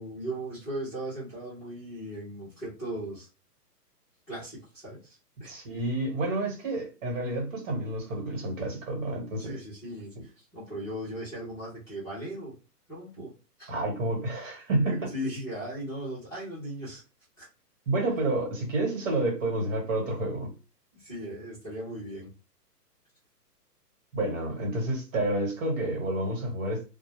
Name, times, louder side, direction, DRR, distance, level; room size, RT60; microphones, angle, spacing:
voice 1, 0.0-3.3 4.3-5.5 9.4-12.5 12.9-13.3 13.6-13.7 14.8-17.0 17.4-17.5 20.9-22.3, right 1 dB, 5° left, 0.6 m, -38 dB
voice 2, 5.5-9.6 13.2-13.3 13.7-15.0 17.9-20.5 24.1-26.8, right 2 dB, 50° right, 1.4 m, -29 dB
2.2 x 2.1 x 3.1 m
hypercardioid pair, 150°, 48 cm